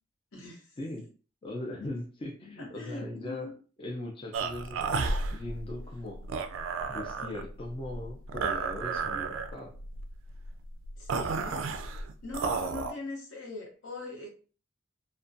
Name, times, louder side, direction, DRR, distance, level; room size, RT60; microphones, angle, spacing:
voice 1, 0.3-0.7 2.6-3.5 11.0-11.6 12.2-14.3, left 2 dB, 75° left, -1 dB, 0.8 m, -41 dB
voice 2, 1.4-3.5 3.8-6.2 6.9-9.7, left 1 dB, 25° left, 0 dB, 0.4 m, -39 dB
sound 1, 4.3-12.9, right 4 dB, 75° right, 0.3 m, -33 dB
2.3 x 2.1 x 2.5 m, 0.37 s
head